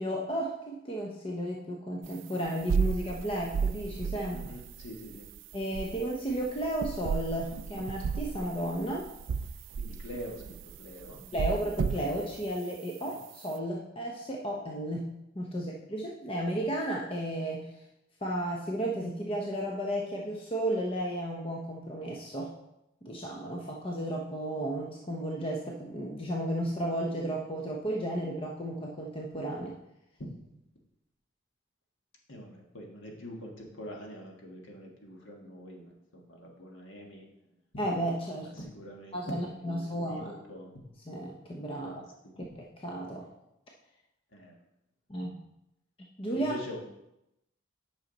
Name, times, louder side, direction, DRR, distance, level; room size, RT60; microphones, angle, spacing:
voice 1, 0.0-4.5 5.5-9.1 11.3-17.8 18.2-22.5 23.0-29.8 37.8-38.5 39.1-40.3 41.1-41.9 42.4-42.5 42.8-43.3 45.1-45.4 46.2-46.5, right 1 dB, 25° left, -1 dB, 0.7 m, -33 dB
sound 1, 2.0-12.8, right 6 dB, 60° right, 0.3 m, -34 dB
voice 2, 4.3-5.2 9.8-11.3 13.0-13.2 15.5-15.6 30.2-30.3 32.3-35.9 36.3-37.2 38.6-40.8 41.8-42.0 44.3-44.5 46.3-46.8, equal, 60° left, 0 dB, 1.6 m, -44 dB
8.8 x 5.7 x 4.0 m, 0.88 s
head